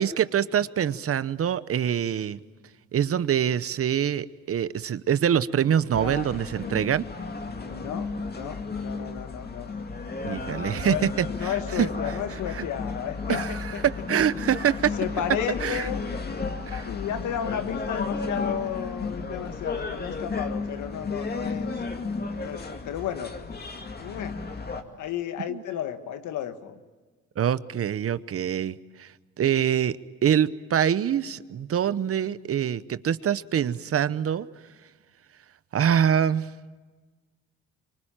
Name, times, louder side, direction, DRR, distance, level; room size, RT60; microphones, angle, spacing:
voice 1, 0.0-2.4 2.9-7.0 10.2-10.9 13.3-13.5 13.8-15.0 15.6-15.9 16.7-16.8 25.5-25.6 27.4-29.1 29.4-34.5 35.7-36.5, right 9 dB, 50° right, 15 dB, 0.9 m, -25 dB
sound 1, 5.9-24.8, left 4 dB, 30° left, 2.4 m, -33 dB
voice 2, 7.5-9.7 10.5-13.8 15.0-16.0 16.7-21.8 22.4-23.4 24.0-24.4 25.0-26.8, left 10 dB, 80° left, 9 dB, 1.6 m, -33 dB
25.0 x 24.5 x 8.9 m, 1.3 s
cardioid pair, 90°, 30 cm